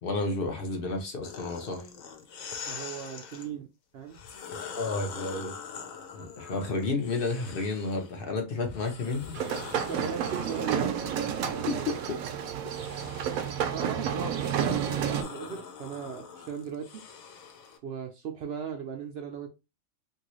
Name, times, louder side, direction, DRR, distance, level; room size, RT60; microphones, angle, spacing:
voice 1, 0.0-1.8 4.8-5.5 6.1-9.4 11.7-12.2, left 3 dB, 50° left, 0.7 m, -31 dB
sound 1, 1.2-3.5 4.1-8.2 8.6-17.8, left 6 dB, 75° left, 1.1 m, -44 dB
voice 2, 2.7-3.7 3.9-4.2 9.8-10.9 13.7-17.0 17.8-19.5, right 7 dB, 65° right, 0.6 m, -37 dB
sound 2, 9.3-15.2, right 8 dB, 80° right, 1.0 m, -30 dB
2.9 x 2.7 x 2.9 m
omnidirectional pair, 1.5 m